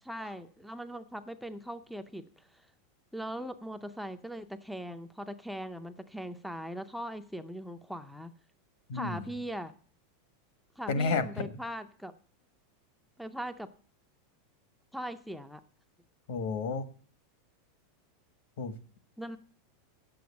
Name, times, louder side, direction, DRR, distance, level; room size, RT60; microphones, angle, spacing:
voice 1, 0.0-2.6 3.1-8.3 8.9-9.7 10.8-12.1 13.2-13.7 14.9-15.6 19.2-19.4, equal, ahead, 7 dB, 0.5 m, -40 dB
voice 2, 8.9-9.3 10.9-11.5 16.3-16.9 18.6-18.7, left 4 dB, 60° left, 12 dB, 1.4 m, -31 dB
9.4 x 7.8 x 8.3 m, 0.43 s
supercardioid pair, 180°, 0 cm